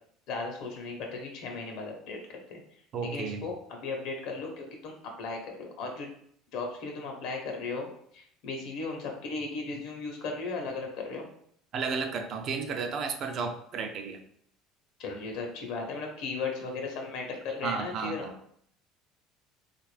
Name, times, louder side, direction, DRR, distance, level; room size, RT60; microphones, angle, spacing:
voice 1, 0.3-2.6 3.0-6.1 6.5-7.9 8.1-11.3 15.0-18.3, left 3 dB, 70° left, 2 dB, 0.8 m, -36 dB
voice 2, 2.9-3.5 11.7-14.2 17.6-18.3, right 5 dB, 45° right, 5 dB, 0.5 m, -33 dB
3.4 x 2.4 x 3.2 m, 0.65 s
cardioid pair, 125°, 0 cm